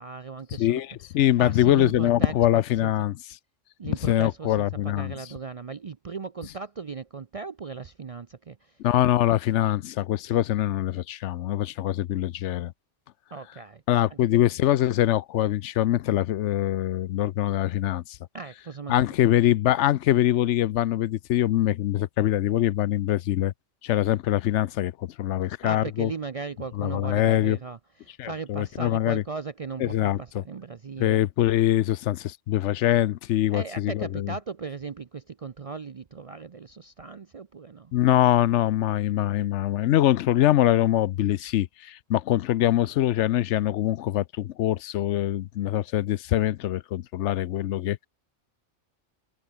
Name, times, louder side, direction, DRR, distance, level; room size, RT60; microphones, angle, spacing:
voice 1, 0.0-0.8 1.4-2.9 3.8-8.6 13.3-13.8 14.1-14.4 18.3-19.0 25.6-31.2 33.5-37.9, right 4 dB, 45° right, 0.4 m, -37 dB
voice 2, 0.6-3.1 3.8-5.1 8.8-12.7 13.9-18.0 18.9-23.5 23.8-24.9 25.2-26.1 26.7-27.6 28.2-29.2 29.8-30.4 31.0-34.3 37.9-48.1, left 13 dB, 75° left, 0.9 m, -23 dB
omnidirectional pair, 1.3 m